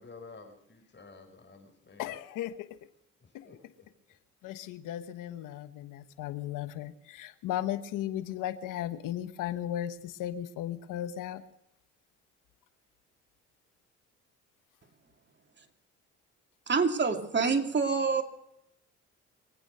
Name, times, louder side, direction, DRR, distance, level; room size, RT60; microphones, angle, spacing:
voice 1, 0.0-2.2 3.2-3.6, left 4 dB, 35° left, 3 dB, 5.6 m, -51 dB
voice 2, 2.0-2.6 4.4-11.4, left 12 dB, 80° left, 11 dB, 1.3 m, -36 dB
voice 3, 16.7-18.2, right 5 dB, 35° right, 4 dB, 2.5 m, -26 dB
23.5 x 8.8 x 6.6 m, 0.81 s
supercardioid pair, 70°, 31 cm